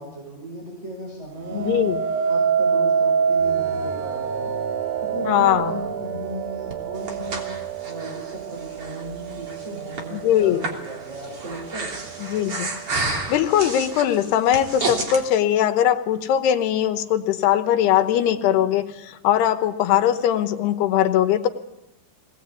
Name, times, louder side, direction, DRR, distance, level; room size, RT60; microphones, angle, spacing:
voice 1, 0.0-1.9 2.3-4.5 5.0-7.5 7.9-12.2, equal, 15° right, -1 dB, 5.6 m, -36 dB
sound 1, 1.4-10.6 11.1-11.6, right 6 dB, 85° right, 3.1 m, -26 dB
voice 2, 1.5-2.0 5.2-5.7 10.1-10.7 12.2-12.7 13.3-21.5, left 11 dB, 90° left, 8 dB, 3.2 m, -20 dB
Breathing, 6.7-15.2, right 3 dB, 35° right, 3.7 m, -32 dB
23.0 x 19.0 x 8.3 m, 0.93 s
omnidirectional pair, 4.6 m